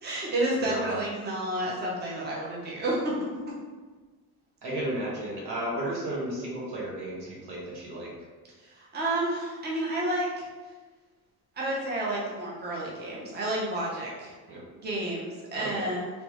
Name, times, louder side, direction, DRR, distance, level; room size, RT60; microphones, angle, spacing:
voice 1, 0.0-3.1 8.7-10.4 11.6-14.3 14.8-16.1, right 1 dB, 25° right, -4 dB, 0.8 m, -30 dB
voice 2, 0.6-1.0 4.6-8.1 14.5-14.6 15.5-15.9, right 1 dB, 85° right, -4 dB, 1.2 m, -34 dB
3.3 x 3.1 x 3.0 m, 1.4 s
cardioid pair, 140°, 39 cm